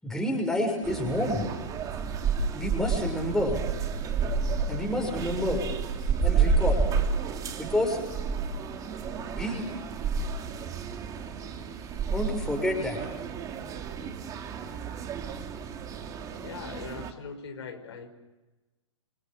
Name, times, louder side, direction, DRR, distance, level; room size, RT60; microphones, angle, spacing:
voice 1, 0.0-1.4 2.6-3.6 4.7-5.6 6.2-6.8 7.6-8.1 9.4-9.7 12.1-13.0, left 1 dB, 5° left, 1 dB, 6.4 m, -28 dB
sound 1, 0.8-17.1, right 5 dB, 20° right, 2.8 m, -30 dB
voice 2, 16.4-18.1, left 6 dB, 55° left, 4 dB, 5.8 m, -40 dB
29.0 x 26.5 x 7.5 m, 1.1 s
figure-of-eight pair, 120°, 17 cm